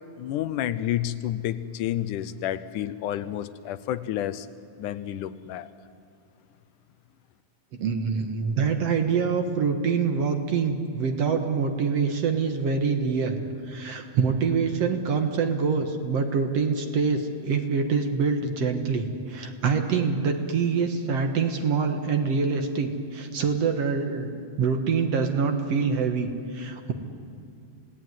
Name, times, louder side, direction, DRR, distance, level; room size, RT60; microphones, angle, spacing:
voice 1, 0.2-4.5 4.8-5.7, left 12 dB, 85° left, 13 dB, 2.4 m, -30 dB
voice 2, 7.8-13.4 13.7-26.9, right 5 dB, 60° right, 5 dB, 2.3 m, -25 dB
28.0 x 18.0 x 9.5 m, 2.6 s
omnidirectional pair, 3.5 m